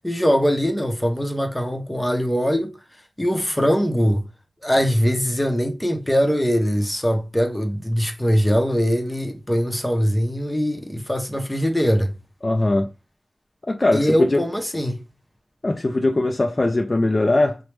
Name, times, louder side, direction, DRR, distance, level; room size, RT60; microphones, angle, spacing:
voice 1, 0.0-2.7 3.2-4.2 4.6-12.1 13.9-15.0, equal, 10° left, 0.7 m, -21 dB
voice 2, 12.4-12.9 13.7-14.4 15.6-17.6, left 2 dB, 45° left, 0.3 m, -20 dB
3.0 x 2.0 x 3.3 m
cardioid pair, 45°, 0 cm